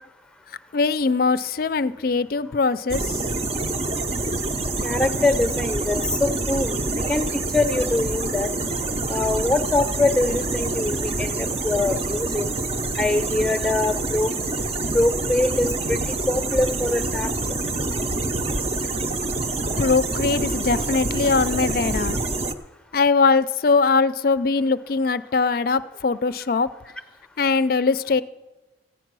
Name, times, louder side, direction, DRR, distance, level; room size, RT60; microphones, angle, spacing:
voice 1, 0.7-3.2 19.8-22.2 22.9-26.7 27.4-28.2, left 4 dB, 50° left, 14 dB, 0.4 m, -21 dB
sound 1, 2.9-22.5, right 2 dB, 35° right, 0.6 m, -26 dB
voice 2, 4.8-8.5 9.1-12.5 13.0-14.3 14.9-17.6, left 2 dB, 5° left, 9 dB, 0.7 m, -24 dB
15.0 x 9.0 x 6.1 m, 1.1 s
head